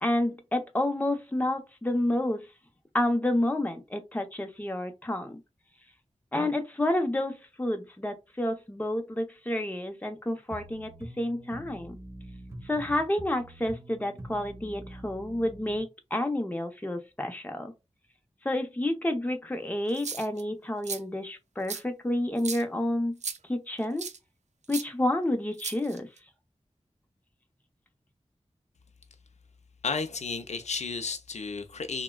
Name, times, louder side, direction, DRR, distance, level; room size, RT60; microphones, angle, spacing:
voice 1, 0.0-2.4 2.9-5.4 6.3-12.0 12.6-17.7 18.4-23.2 23.5-24.1 24.7-26.1, left 1 dB, 15° left, 0.7 m, -29 dB
sound 1, 10.5-15.8, right 1 dB, 20° right, 0.9 m, -45 dB
sound 2, 19.9-20.4 20.8-21.0 21.7-21.8 22.4-22.6 23.2-23.4 24.0-24.2 24.7-24.8 25.6-26.2, right 5 dB, 80° right, 0.4 m, -36 dB
voice 2, 29.8-32.0, left 4 dB, 80° left, 0.5 m, -33 dB
3.4 x 2.1 x 2.2 m
wide cardioid pair, 55°, 12 cm